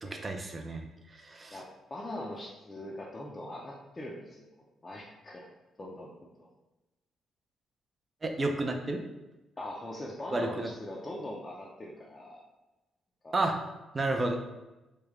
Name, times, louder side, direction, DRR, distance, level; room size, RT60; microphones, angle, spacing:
voice 1, 0.0-0.9 1.1-1.6 8.2-9.0 10.3-10.7 13.3-13.6 13.9-14.4, right 2 dB, 30° right, 3 dB, 0.5 m, -31 dB
voice 2, 1.9-4.4 4.8-5.5 5.8-6.5 9.6-12.4 13.2-13.3, left 1 dB, 25° left, -4 dB, 0.5 m, -41 dB
3.2 x 2.2 x 3.6 m, 1.0 s
cardioid pair, 90°, 0 cm